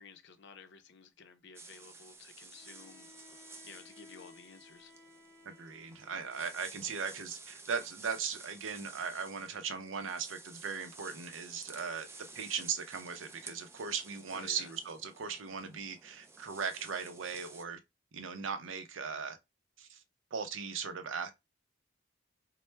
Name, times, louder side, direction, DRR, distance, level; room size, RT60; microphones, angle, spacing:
voice 1, 0.0-3.1 3.6-4.9 14.3-14.7, left 5 dB, 65° left, 0.6 m, -54 dB
sound 1, 1.5-17.6, right 3 dB, 15° right, 0.4 m, -53 dB
Bowed string instrument, 2.5-6.8, left 3 dB, 35° left, 1.3 m, -59 dB
voice 2, 5.4-12.1 12.3-17.8 18.1-19.4 19.8-20.0 20.3-21.3, right 6 dB, 75° right, 0.5 m, -38 dB
4.3 x 2.1 x 3.2 m
head